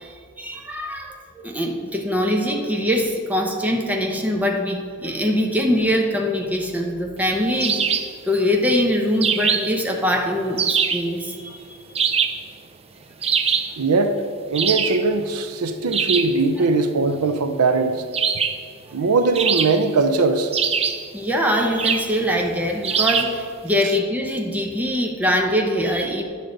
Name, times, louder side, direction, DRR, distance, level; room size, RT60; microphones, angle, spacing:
voice 1, 0.0-11.8 21.1-26.2, equal, 5° right, 0 dB, 0.9 m, -23 dB
sound 1, 7.6-8.2 9.2-9.8 10.6-11.1 11.9-12.5 13.2-13.8 14.5-15.1 15.9-16.4 18.1-18.7 19.3-20.0 20.5-21.1 21.8-22.1 22.8-23.4, right 6 dB, 30° right, 0.4 m, -22 dB
voice 2, 13.8-14.2 14.5-18.1 18.9-20.5 23.8-23.9, right 3 dB, 80° right, 8 dB, 0.5 m, -20 dB
10.5 x 6.6 x 3.9 m, 2.1 s
head